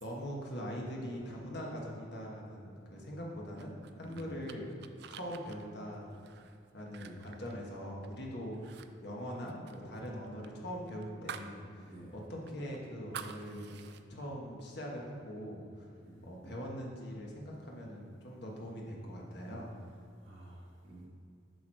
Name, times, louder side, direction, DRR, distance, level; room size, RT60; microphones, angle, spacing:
voice 1, 0.0-4.8 5.1-6.1 6.7-8.7 9.0-13.7 14.1-15.9 16.2-19.8, equal, 60° left, -2 dB, 1.4 m, -42 dB
sound 1, 3.6-8.2 8.5-8.9 9.1-11.6 11.9-12.0 12.5-14.0, right 7 dB, 60° right, 0.4 m, -49 dB
voice 2, 4.0-4.3 7.0-7.2 11.8-12.2 16.0-16.3 20.2-21.1, right 1 dB, 85° right, -6 dB, 1.9 m, -51 dB
7.0 x 6.2 x 4.7 m, 2.5 s
head